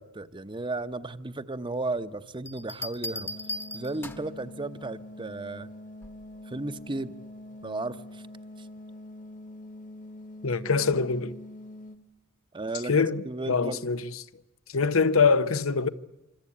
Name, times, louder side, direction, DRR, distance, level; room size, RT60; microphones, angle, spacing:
voice 1, 0.0-3.3 3.7-5.7 6.4-7.1 7.6-8.2 8.6-8.7 12.5-13.8, right 2 dB, 25° right, 0.9 m, -34 dB
sound 1, 2.5-4.4 6.0-6.4, left 1 dB, 10° left, 1.0 m, -37 dB
sound 2, 3.1-12.0, left 1 dB, 40° left, 1.4 m, -45 dB
voice 2, 10.4-11.3 12.9-14.0 14.7-15.9, left 5 dB, 85° left, 1.0 m, -24 dB
26.0 x 25.5 x 8.6 m
head